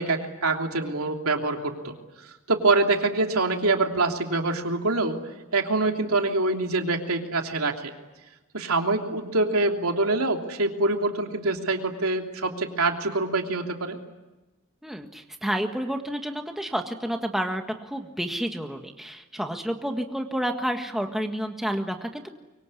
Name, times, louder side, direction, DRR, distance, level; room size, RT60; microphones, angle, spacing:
voice 1, 0.0-1.9 2.5-5.2 5.5-7.9 8.5-14.0, right 2 dB, 80° right, 3 dB, 3.1 m, -25 dB
voice 2, 14.8-22.4, equal, ahead, 4 dB, 1.6 m, -30 dB
24.0 x 24.0 x 9.9 m, 1.1 s
head